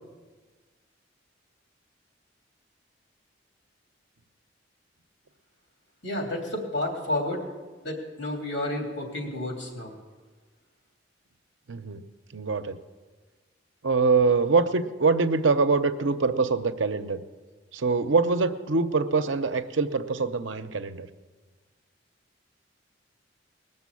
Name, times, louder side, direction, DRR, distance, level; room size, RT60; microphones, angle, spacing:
voice 1, 6.0-7.4 7.8-9.9, left 1 dB, 80° left, 1 dB, 3.3 m, -31 dB
voice 2, 11.7-12.0 12.3-12.8 13.8-17.2 17.7-21.1, right 4 dB, 85° right, 9 dB, 0.8 m, -24 dB
20.0 x 7.0 x 8.4 m, 1.4 s
head